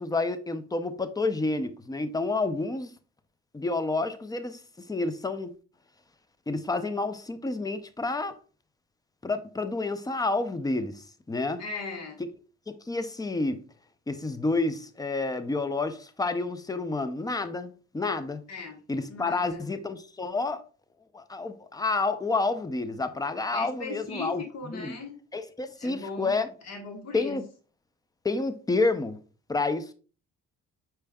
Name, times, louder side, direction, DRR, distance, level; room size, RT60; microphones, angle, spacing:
voice 1, 0.0-2.9 3.5-5.5 6.5-8.4 9.2-11.6 12.7-13.6 14.1-18.4 18.9-20.6 21.1-24.4 24.7-24.9 25.3-26.5 27.1-27.4 28.2-29.2 29.5-29.9, left 3 dB, 15° left, 0.5 m, -29 dB
voice 2, 11.6-12.2 18.5-18.8 19.1-19.6 23.5-25.1 25.8-26.3 26.6-27.4, left 3 dB, 60° left, 1.3 m, -38 dB
4.9 x 4.4 x 2.3 m
cardioid pair, 90°, 30 cm